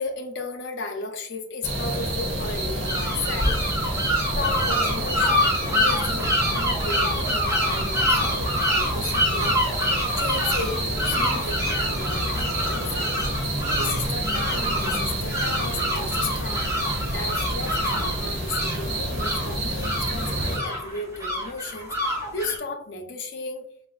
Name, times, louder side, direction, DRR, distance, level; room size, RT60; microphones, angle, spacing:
voice 1, 0.0-3.9 4.4-9.6 10.2-23.6, left 4 dB, 65° left, 4 dB, 0.5 m, -34 dB
sound 1, 1.6-20.6, right 1 dB, 85° right, 1.1 m, -28 dB
sound 2, 2.9-22.6, left 1 dB, 15° right, 0.6 m, -27 dB
4.0 x 2.4 x 2.3 m, 0.62 s
head